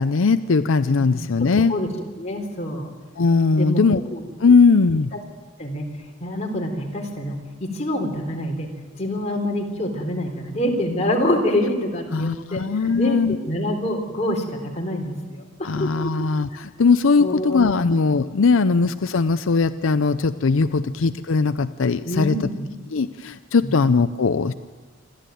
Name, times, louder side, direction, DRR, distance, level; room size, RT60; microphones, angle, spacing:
voice 1, 0.0-1.7 3.2-4.0 4.4-5.1 12.1-13.4 15.6-22.4 22.9-24.5, left 4 dB, 80° left, 12 dB, 0.6 m, -19 dB
voice 2, 2.2-2.9 3.5-3.8 4.1-4.2 5.6-5.9 6.2-8.7 8.9-15.5 15.8-15.9 17.2-17.6 22.0-22.7 23.6-23.7, left 1 dB, 35° left, 1 dB, 3.6 m, -26 dB
27.5 x 13.0 x 9.3 m, 1.4 s
head